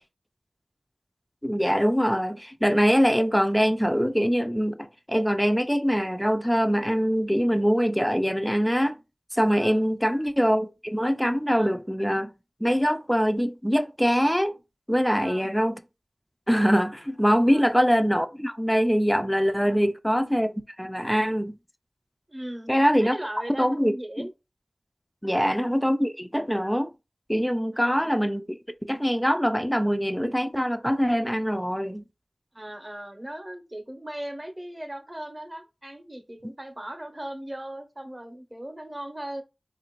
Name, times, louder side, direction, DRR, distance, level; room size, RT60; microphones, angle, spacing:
voice 1, 1.4-9.0 9.3-12.3 12.6-14.5 14.9-15.7 16.5-20.5 20.8-21.5 22.7-23.2 23.6-24.3 25.2-26.9 27.3-28.6 28.9-32.0, equal, 5° left, 0.4 m, -23 dB
voice 2, 9.5-9.9 11.5-11.8 15.0-15.5 17.5-17.8 19.6-19.9 22.3-22.7 23.0-24.3 25.2-25.5 27.7-28.1 32.5-39.4, right 1 dB, 25° right, 0.7 m, -38 dB
3.4 x 2.4 x 2.9 m
wide cardioid pair, 40°, 0 cm